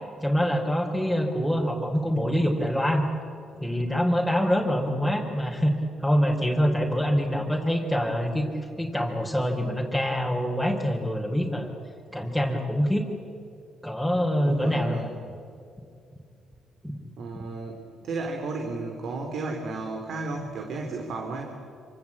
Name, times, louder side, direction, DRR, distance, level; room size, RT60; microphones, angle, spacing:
voice 1, 0.2-3.1 3.6-5.7 6.0-8.5 8.8-11.7 12.1-13.1 13.8-15.1 16.8-17.0, equal, 5° right, -2 dB, 3.8 m, -25 dB
voice 2, 14.4-15.1 17.2-21.6, right 3 dB, 65° right, 2 dB, 3.4 m, -33 dB
26.5 x 25.0 x 8.6 m, 2.5 s
cardioid pair, 90°, 0 cm